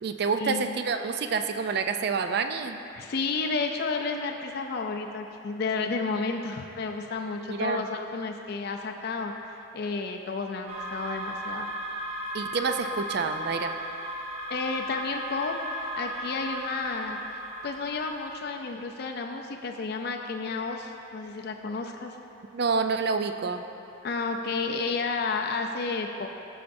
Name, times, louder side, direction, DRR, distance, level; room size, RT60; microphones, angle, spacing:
voice 1, 0.0-2.8 7.5-7.8 12.3-13.8 22.5-23.6, right 5 dB, 50° right, 8 dB, 0.3 m, -28 dB
voice 2, 2.9-11.7 14.5-17.2 17.6-22.2 24.0-26.3, left 4 dB, 50° left, 3 dB, 0.4 m, -31 dB
sound 1, 10.7-18.4, right 1 dB, 30° right, 0.9 m, -36 dB
13.5 x 5.7 x 2.6 m, 2.8 s
head